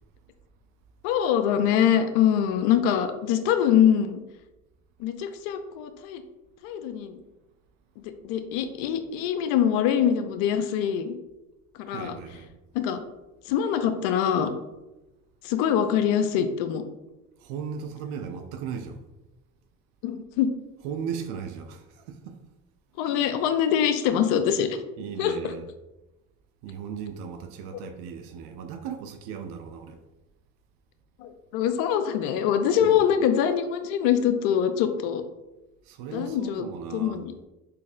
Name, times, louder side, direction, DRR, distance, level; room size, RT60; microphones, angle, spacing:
voice 1, 1.0-4.2 5.0-6.2 6.6-7.2 8.2-11.2 11.9-12.1 12.7-13.0 13.5-14.5 15.4-16.8 20.0-20.5 23.0-24.7 25.2-25.3 31.2-35.2 36.1-37.3, left 9 dB, 65° left, 0.5 m, -24 dB
voice 2, 11.9-12.5 17.4-19.0 20.8-22.4 25.0-25.7 26.6-30.0 32.8-33.1 35.8-37.2, right 7 dB, 60° right, 0.5 m, -37 dB
4.0 x 2.6 x 2.5 m
hypercardioid pair, 60°, 43 cm